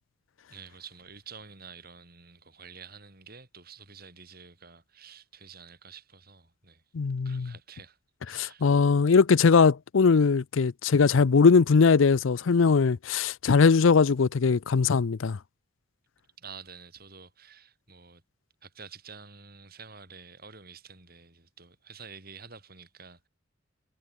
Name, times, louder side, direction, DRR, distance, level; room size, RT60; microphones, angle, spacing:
voice 1, 0.5-6.8 7.2-8.7 16.4-18.2 18.6-23.3, right 5 dB, 50° right, 4.7 m, -49 dB
voice 2, 6.9-7.5 8.3-15.4, left 5 dB, 75° left, 0.5 m, -21 dB
head